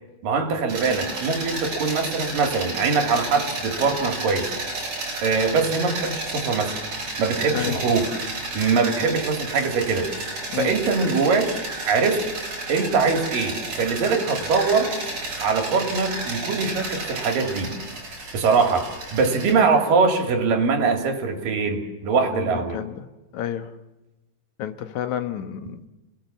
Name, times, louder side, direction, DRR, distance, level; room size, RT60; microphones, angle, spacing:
voice 1, 0.2-4.5 5.2-6.7 7.2-8.2 8.5-10.1 10.6-11.6 11.9-12.3 12.7-14.9 15.4-17.7 18.3-22.8, right 4 dB, 80° right, 5 dB, 4.3 m, -22 dB
sound 1, 0.7-19.5, right 2 dB, 50° right, 5.9 m, -32 dB
voice 2, 22.3-23.1 23.3-23.8 24.6-25.9, left 11 dB, 65° left, 9 dB, 2.4 m, -30 dB
30.0 x 19.0 x 7.3 m, 1.1 s
omnidirectional pair, 3.9 m